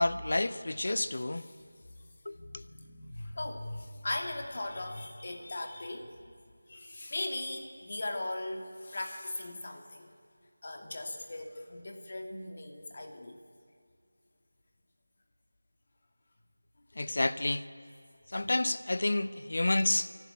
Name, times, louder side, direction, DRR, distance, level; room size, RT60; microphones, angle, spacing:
voice 1, 0.0-1.4 2.3-2.6 17.0-17.6 18.3-20.1, left 2 dB, 60° left, 14 dB, 0.9 m, -29 dB
voice 2, 0.9-2.0 2.3-6.3 6.7-10.1 10.6-13.4, left 2 dB, 45° left, 4 dB, 2.4 m, -39 dB
27.5 x 12.0 x 9.7 m, 2.4 s
figure-of-eight pair, 170°, 0 cm